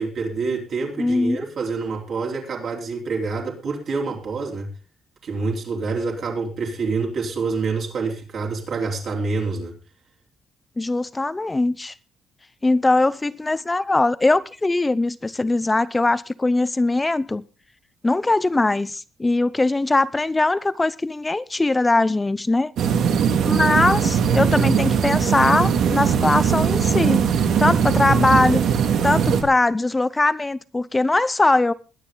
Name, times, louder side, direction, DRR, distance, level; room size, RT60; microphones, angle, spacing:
voice 1, 0.0-4.7 5.2-9.7, right 4 dB, 50° right, 4.1 m, -27 dB
voice 2, 1.0-1.4 10.8-11.9 12.6-17.4 18.0-22.7 23.5-27.2 27.6-28.6 29.0-31.7, left 2 dB, 15° left, 0.6 m, -21 dB
sound 1, 22.8-29.4, right 7 dB, 70° right, 2.4 m, -20 dB
21.5 x 9.8 x 3.8 m
cardioid pair, 165°, 0 cm